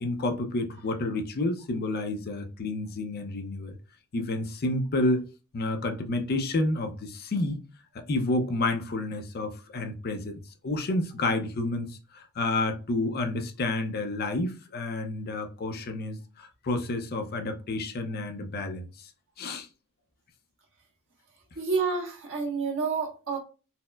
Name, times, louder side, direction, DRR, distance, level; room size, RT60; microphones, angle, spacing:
voice 1, 0.0-3.8 4.1-5.2 5.5-7.6 8.1-19.1 19.4-19.7, left 2 dB, 45° left, 0.5 m, -30 dB
voice 2, 21.5-23.4, right 4 dB, 60° right, 1.2 m, -29 dB
4.1 x 2.0 x 2.2 m
head